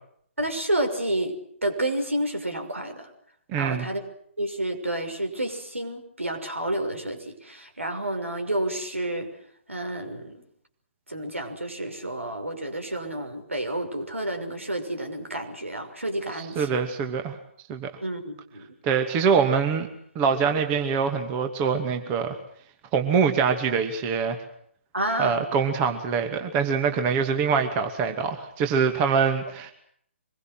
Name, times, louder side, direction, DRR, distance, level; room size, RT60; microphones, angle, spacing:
voice 1, 0.4-1.3 1.6-3.1 3.5-4.0 4.4-9.3 9.7-10.4 11.1-16.8 18.0-18.7 24.9-25.4, right 1 dB, 80° right, 5 dB, 6.2 m, -30 dB
voice 2, 3.5-3.9 16.4-17.4 17.7-17.9 18.8-19.9 20.1-22.4 22.9-24.4 25.2-29.7, right 6 dB, 20° right, 7 dB, 2.5 m, -24 dB
25.5 x 22.0 x 7.9 m, 0.67 s
figure-of-eight pair, 135°, 7 cm